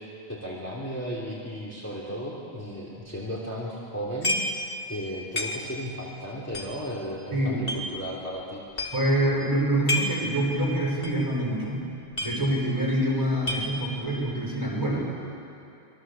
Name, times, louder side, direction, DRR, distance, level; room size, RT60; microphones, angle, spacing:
voice 1, 0.0-4.4 4.9-8.9, equal, 15° left, -5 dB, 3.0 m, -35 dB
sound 1, 4.2-4.7 4.9-5.0 5.4-5.9 6.5-7.8 8.4-8.5 8.7-9.1 9.6-10.3 10.6-10.7 11.0-11.3 11.5-11.6 11.9-12.8 13.1-14.0, left 1 dB, 55° left, 2.9 m, -30 dB
voice 2, 7.3-7.7 8.9-11.8 12.2-15.1, right 1 dB, 15° right, -4 dB, 5.9 m, -26 dB
27.0 x 21.5 x 7.3 m, 2.6 s
omnidirectional pair, 1.1 m